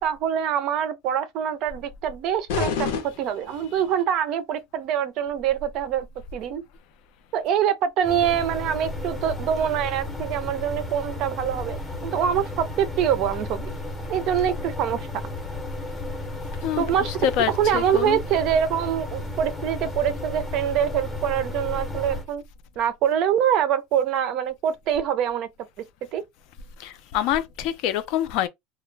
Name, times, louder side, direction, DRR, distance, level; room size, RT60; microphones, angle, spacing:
voice 1, 0.0-2.9 3.2-6.1 6.3-6.6 7.3-11.8 12.0-13.7 14.1-15.1 16.8-17.2 17.6-22.4 22.8-25.5 26.1-26.2, right 9 dB, 40° right, 0.4 m, -24 dB
sound 1, 2.5-4.0, left 5 dB, 85° left, 0.7 m, -29 dB
sound 2, 8.0-22.2, left 1 dB, 10° left, 0.7 m, -33 dB
voice 2, 16.6-18.2 26.8-28.5, left 11 dB, 50° left, 0.4 m, -26 dB
2.2 x 2.0 x 3.1 m
cardioid pair, 165°, 0 cm